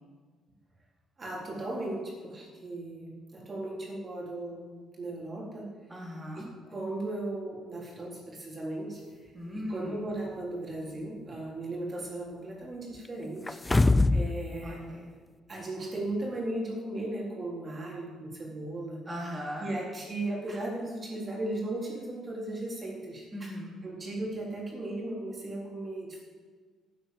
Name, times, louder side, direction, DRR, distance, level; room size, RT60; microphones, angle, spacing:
voice 1, 1.2-4.6 5.0-5.7 6.3-9.0 9.5-13.6 14.1-14.8 15.5-19.0 19.6-23.5 23.8-26.2, right 2 dB, 30° right, -3 dB, 3.8 m, -36 dB
voice 2, 5.9-6.5 9.3-10.0 14.6-15.1 19.0-19.7 23.3-23.7, equal, 10° right, -6 dB, 3.3 m, -38 dB
sound 1, 13.5-14.3 14.7-14.8, left 2 dB, 15° left, 0.5 m, -22 dB
12.5 x 8.9 x 7.9 m, 1.5 s
cardioid pair, 110°, 0 cm